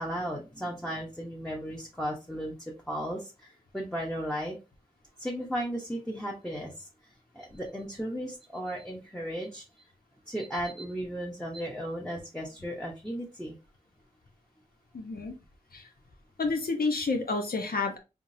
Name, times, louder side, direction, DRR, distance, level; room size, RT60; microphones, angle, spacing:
voice 1, 0.0-2.5 2.9-4.6 5.2-6.9 7.3-9.6 10.3-13.6, equal, 5° left, -2 dB, 0.9 m, -35 dB
voice 2, 14.9-15.3 15.7-15.9 16.4-18.0, left 3 dB, 75° left, 3 dB, 1.0 m, -29 dB
3.7 x 3.4 x 2.7 m, 0.27 s
wide cardioid pair, 65°, 15 cm